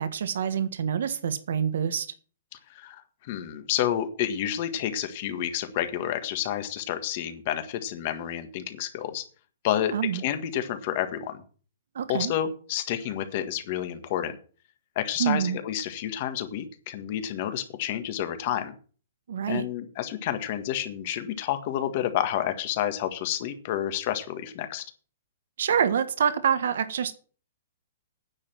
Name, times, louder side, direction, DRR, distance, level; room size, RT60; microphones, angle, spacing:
voice 1, 0.0-2.1 9.9-10.2 11.9-12.3 15.2-15.6 19.3-19.7 25.6-27.1, right 8 dB, 70° right, 10 dB, 1.5 m, -26 dB
voice 2, 2.7-9.2 9.6-11.4 12.1-14.4 14.9-18.7 19.5-24.8, left 11 dB, 35° left, 9 dB, 1.6 m, -30 dB
9.8 x 6.8 x 7.5 m, 0.40 s
hypercardioid pair, 170°, 0 cm